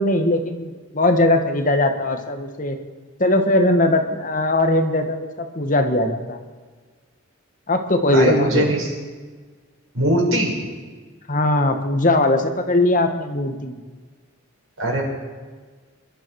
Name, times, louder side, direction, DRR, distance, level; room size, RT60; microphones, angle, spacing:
voice 1, 0.0-2.8 3.2-6.4 7.7-8.6 11.3-13.8, left 1 dB, 40° left, 6 dB, 1.6 m, -20 dB
voice 2, 8.1-8.9 9.9-10.5 14.8-15.0, right 1 dB, 90° right, -2 dB, 5.8 m, -20 dB
24.0 x 12.5 x 4.8 m, 1.5 s
head